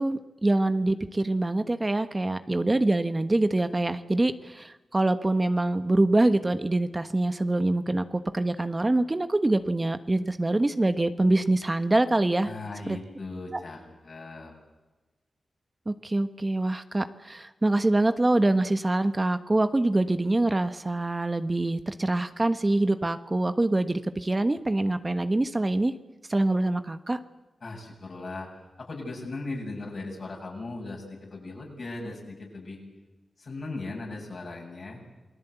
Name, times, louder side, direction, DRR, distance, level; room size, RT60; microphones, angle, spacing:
voice 1, 0.0-12.5 12.9-13.0 15.9-25.9 26.3-27.2, right 2 dB, 30° right, 10 dB, 1.3 m, -25 dB
voice 2, 12.4-14.5 27.6-28.5 28.8-32.8 33.4-35.0, left 2 dB, 65° left, 0 dB, 7.9 m, -38 dB
28.0 x 18.5 x 8.2 m, 1.1 s
cardioid pair, 40°, 0 cm